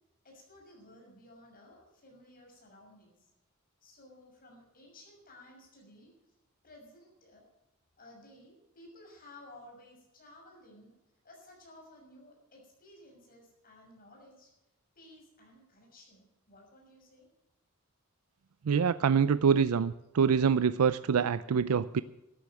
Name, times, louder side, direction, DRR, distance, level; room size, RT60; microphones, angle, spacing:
voice 1, 0.2-3.1 3.8-6.1 6.6-7.4 8.0-10.9 11.2-14.5 15.0-17.3, left 1 dB, 40° left, 0 dB, 6.3 m, -55 dB
voice 2, 18.7-22.0, right 6 dB, 85° right, 15 dB, 0.5 m, -25 dB
13.0 x 10.5 x 7.6 m, 0.91 s
head